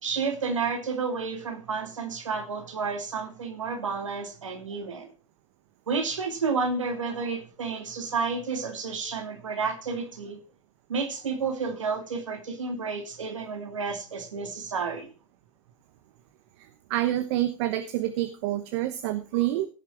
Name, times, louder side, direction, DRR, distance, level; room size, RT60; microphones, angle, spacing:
voice 1, 0.0-5.1 5.9-10.4 10.9-15.1, right 5 dB, 85° right, 6 dB, 2.3 m, -31 dB
voice 2, 16.9-19.7, right 14 dB, 65° right, 10 dB, 1.2 m, -27 dB
16.5 x 6.8 x 4.5 m, 0.35 s
hypercardioid pair, 90°, 16 cm